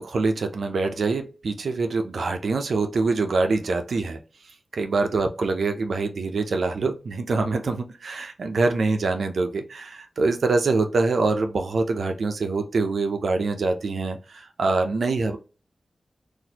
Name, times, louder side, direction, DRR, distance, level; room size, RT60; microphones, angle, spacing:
voice 1, 0.0-4.2 4.7-15.4, right 3 dB, 70° right, 5 dB, 0.5 m, -25 dB
4.1 x 2.5 x 2.8 m, 0.33 s
wide cardioid pair, 125°, 0 cm